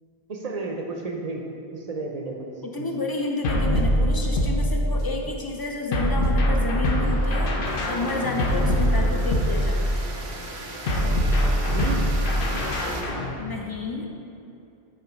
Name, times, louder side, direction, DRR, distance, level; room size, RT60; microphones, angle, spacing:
voice 1, 0.3-1.4 1.7-2.9 11.7-12.1, right 3 dB, 50° right, 1 dB, 0.5 m, -32 dB
voice 2, 2.6-7.5 7.9-9.9 13.4-14.1, left 3 dB, 35° left, 1 dB, 0.3 m, -30 dB
sound 1, 3.4-5.2 5.9-10.1 10.9-13.3, equal, 60° left, 0.9 m, -23 dB
sound 2, 6.9-13.3, left 1 dB, 80° left, 1.2 m, -40 dB
sound 3, 7.6-13.0, right 3 dB, 90° right, 0.9 m, -39 dB
5.6 x 3.9 x 5.1 m, 2.5 s
omnidirectional pair, 1.0 m